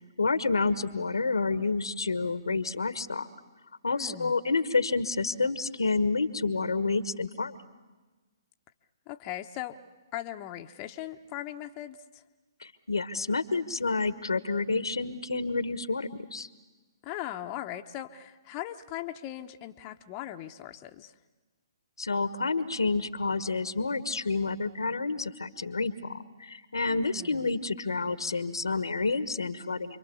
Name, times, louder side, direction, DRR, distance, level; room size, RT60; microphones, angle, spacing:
voice 1, 0.2-3.3 3.8-7.6 12.6-16.5 22.0-30.0, left 3 dB, 85° left, 14 dB, 1.3 m, -29 dB
voice 2, 3.9-4.3 9.1-9.8 10.1-12.2 17.0-21.1 26.8-27.5, left 13 dB, 30° left, 5 dB, 0.9 m, -39 dB
29.0 x 23.5 x 7.1 m, 1.2 s
hypercardioid pair, 135°, 2 cm